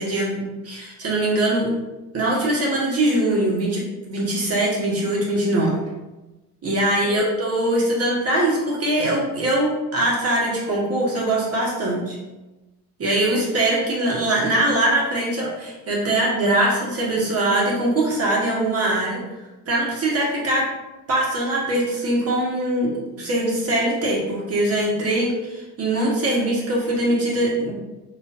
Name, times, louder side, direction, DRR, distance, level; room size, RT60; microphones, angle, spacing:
voice 1, 0.0-1.8 2.1-5.7 6.6-12.2 13.0-19.2 19.7-20.7 21.1-27.7, right 1 dB, 30° right, -4 dB, 1.2 m, -22 dB
3.8 x 3.3 x 2.5 m, 1.1 s
supercardioid pair, 100°, 48 cm